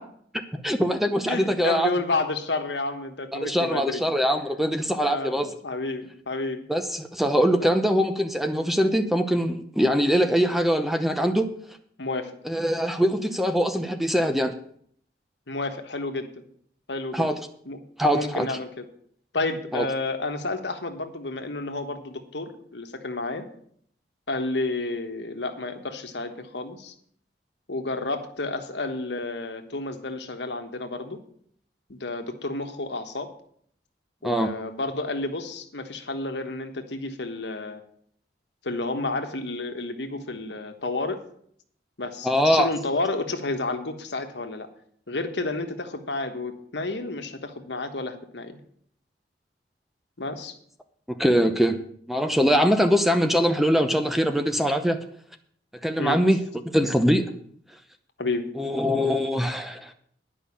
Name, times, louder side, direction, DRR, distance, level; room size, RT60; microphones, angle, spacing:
voice 1, 0.6-1.9 3.3-5.5 6.7-11.5 12.4-14.5 17.1-17.4 18.0-18.6 19.7-19.9 34.2-34.5 42.2-42.7 51.1-51.8 52.1-55.0 55.8-56.4 56.7-57.3 58.6-59.9, equal, ahead, 7 dB, 0.7 m, -22 dB
voice 2, 1.3-4.0 5.1-6.6 7.6-7.8 12.0-12.3 15.5-16.4 16.9-17.3 17.7-17.8 18.1-18.9 19.3-23.5 24.3-26.9 27.7-31.2 31.9-33.3 34.2-37.8 38.6-41.2 42.0-44.7 45.1-48.6 50.2-50.5 56.0-56.2 58.2-58.5, left 2 dB, 80° left, 6 dB, 1.3 m, -31 dB
10.5 x 5.6 x 8.4 m, 0.63 s
head